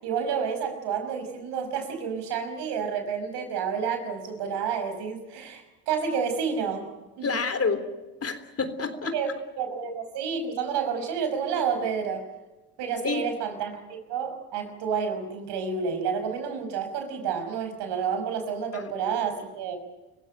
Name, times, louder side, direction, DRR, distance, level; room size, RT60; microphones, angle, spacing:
voice 1, 0.0-6.9 7.2-7.4 9.1-9.3 9.6-12.3 12.8-19.8, right 6 dB, 75° right, 7 dB, 5.7 m, -30 dB
voice 2, 7.2-7.8 8.2-9.2 13.0-13.3 18.7-18.8, left 4 dB, 35° left, 10 dB, 3.5 m, -28 dB
26.5 x 15.5 x 9.1 m, 1.1 s
supercardioid pair, 85°, 42 cm